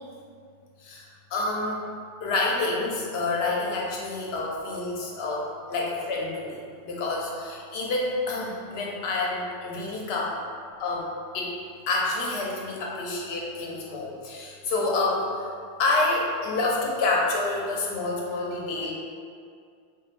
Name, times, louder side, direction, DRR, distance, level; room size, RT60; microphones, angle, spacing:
voice 1, 0.8-1.8 2.2-10.4 10.8-11.1 11.3-11.5 11.9-15.5 15.8-18.9, left 2 dB, 80° left, -3 dB, 0.8 m, -28 dB
2.4 x 2.3 x 3.2 m, 2.2 s
omnidirectional pair, 1.0 m